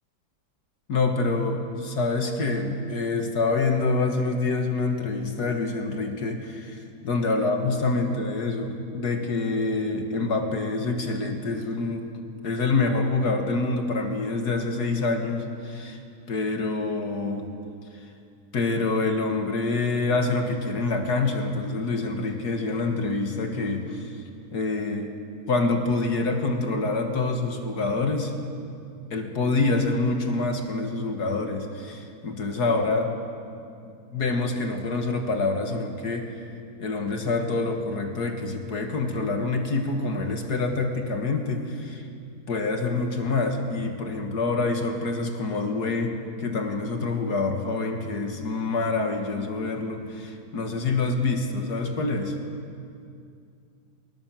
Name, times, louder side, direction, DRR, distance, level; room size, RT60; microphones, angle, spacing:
voice 1, 0.9-12.1 12.4-16.0 16.3-17.5 18.5-24.2 24.5-25.2 25.5-28.3 29.1-33.2 33.8-36.4 36.8-42.1 42.5-52.4, left 3 dB, 65° left, 4 dB, 2.2 m, -26 dB
20.0 x 19.5 x 7.4 m, 2.4 s
omnidirectional pair, 1.9 m